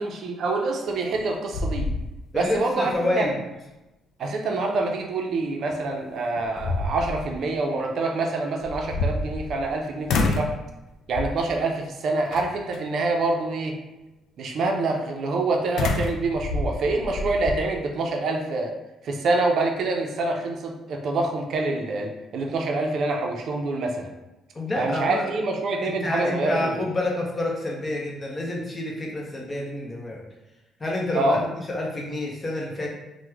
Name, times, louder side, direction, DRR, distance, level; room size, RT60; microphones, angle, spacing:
voice 1, 0.0-1.9 2.3-2.9 3.2-3.3 4.2-10.5 11.1-13.7 14.4-18.7 19.0-24.1 24.8-26.7 31.1-31.4, right 3 dB, 65° right, 2 dB, 0.4 m, -26 dB
sound 1, 0.9-1.2 1.5-2.5 2.9-3.0 5.7-5.8 6.4-7.3 8.6-9.7 10.1-10.6 11.1-11.5 12.3-12.8 15.8-17.6, left 3 dB, 75° left, 0.3 m, -27 dB
voice 2, 2.3-3.4 24.5-25.3 25.8-30.2 30.8-32.9, left 2 dB, 30° left, -2 dB, 0.7 m, -28 dB
3.0 x 2.1 x 3.4 m, 0.99 s
cardioid pair, 100°, 0 cm